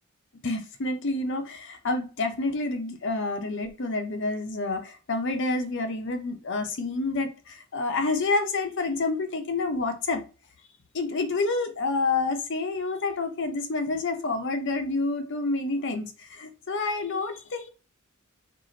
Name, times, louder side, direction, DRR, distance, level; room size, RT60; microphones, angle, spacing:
voice 1, 0.4-10.2 10.9-17.7, left 3 dB, 60° left, 0.7 m, -28 dB
4.7 x 2.5 x 3.9 m
head